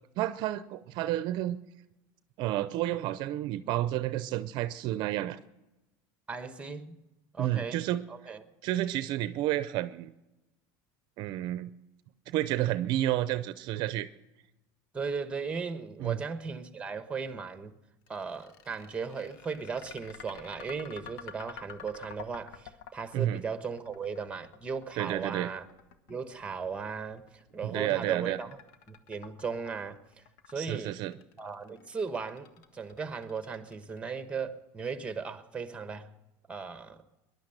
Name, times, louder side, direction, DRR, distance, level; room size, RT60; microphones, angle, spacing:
voice 1, 0.2-1.6 2.4-5.4 7.4-8.0 8.6-10.1 11.2-11.7 12.3-14.1 16.0-16.2 23.1-23.4 25.0-25.5 27.6-28.4 30.6-31.1, right 14 dB, 55° right, 14 dB, 0.6 m, -30 dB
voice 2, 6.3-7.0 7.3-8.4 14.9-17.7 18.1-25.7 26.1-28.6 28.9-30.0 30.5-31.0 31.4-32.5 32.7-36.1 36.5-37.0, right 5 dB, 10° right, 10 dB, 1.1 m, -37 dB
sound 1, 18.1-34.2, left 7 dB, 75° left, 1.2 m, -50 dB
19.5 x 11.0 x 6.5 m, 1.0 s
supercardioid pair, 135°, 9 cm